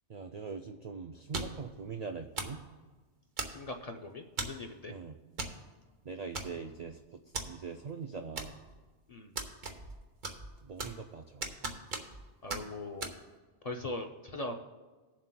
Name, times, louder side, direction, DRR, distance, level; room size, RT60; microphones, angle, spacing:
voice 1, 0.1-2.6 4.9-5.2 6.0-7.2 7.5-8.6 10.6-11.5, right 5 dB, 70° right, 5 dB, 0.3 m, -42 dB
sound 1, 1.3-1.7 2.4-2.6 3.4-3.8 4.4-4.7 5.4-5.6 5.8-5.9 6.3-6.8 7.3-7.5 8.4-8.8 9.4-10.0 10.2-11.1 11.4-12.2 12.5-12.6 13.0-13.1, right 3 dB, 45° right, 1.0 m, -38 dB
voice 2, 3.5-4.9 9.1-9.3 12.4-13.1 13.6-14.6, left 2 dB, 45° left, 3 dB, 0.5 m, -40 dB
19.5 x 7.3 x 2.2 m, 1.3 s
omnidirectional pair, 1.2 m